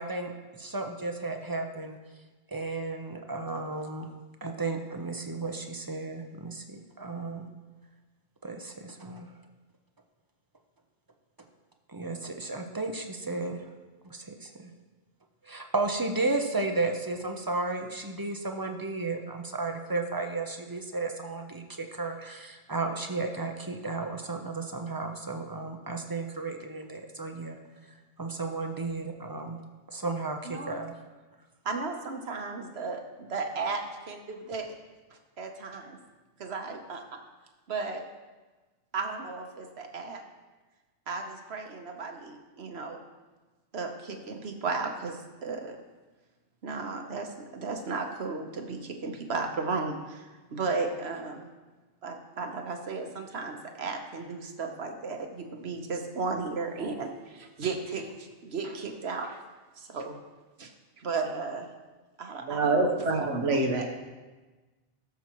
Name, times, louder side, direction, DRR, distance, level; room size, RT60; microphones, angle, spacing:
voice 1, 0.0-2.0 2.5-4.1 4.4-7.5 8.4-9.3 11.9-13.7 14.0-14.7 15.4-27.6 27.8-29.6 29.9-31.0, right 3 dB, 20° right, 4 dB, 0.7 m, -33 dB
voice 2, 31.6-34.7 35.4-36.0 36.4-37.0 37.7-38.0 38.9-40.2 41.1-43.0 43.7-45.8 46.6-51.5 52.0-59.4 59.8-60.2 60.6-60.7 61.0-61.7 62.2-63.6, right 4 dB, 60° right, 4 dB, 1.3 m, -35 dB
voice 3, 62.4-63.8, right 3 dB, 80° right, 1 dB, 1.5 m, -26 dB
17.5 x 7.2 x 3.1 m, 1.2 s
omnidirectional pair, 1.2 m